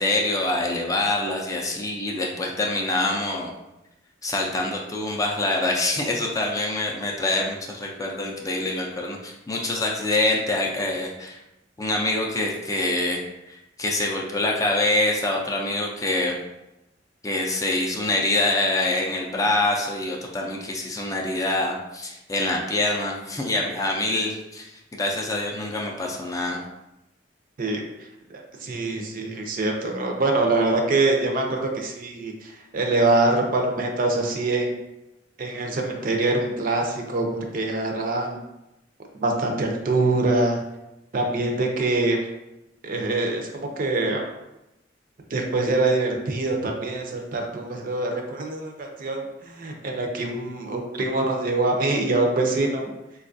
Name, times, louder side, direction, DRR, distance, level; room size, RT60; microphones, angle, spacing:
voice 1, 0.0-3.5 4.2-11.4 11.8-13.2 13.5-16.4 17.2-26.6, left 2 dB, 20° left, -1 dB, 0.4 m, -25 dB
voice 2, 28.3-34.7 35.4-38.4 39.1-40.6 41.1-42.2 42.8-44.3 45.3-52.9, right 2 dB, 50° right, 2 dB, 0.5 m, -24 dB
4.1 x 2.3 x 2.6 m, 0.94 s
head